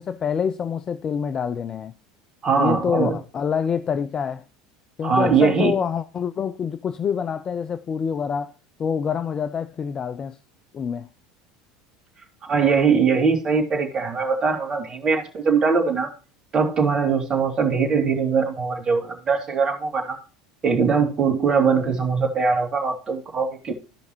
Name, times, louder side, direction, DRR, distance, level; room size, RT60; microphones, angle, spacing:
voice 1, 0.0-1.9 2.6-4.4 5.0-8.5 8.8-10.4 10.7-11.1, left 7 dB, 35° left, 0.5 m, -26 dB
voice 2, 2.4-3.2 5.0-5.7 12.5-16.1 16.5-20.2 20.6-23.7, right 5 dB, 35° right, 2.5 m, -21 dB
14.5 x 5.3 x 2.9 m
hypercardioid pair, 75°, 2 cm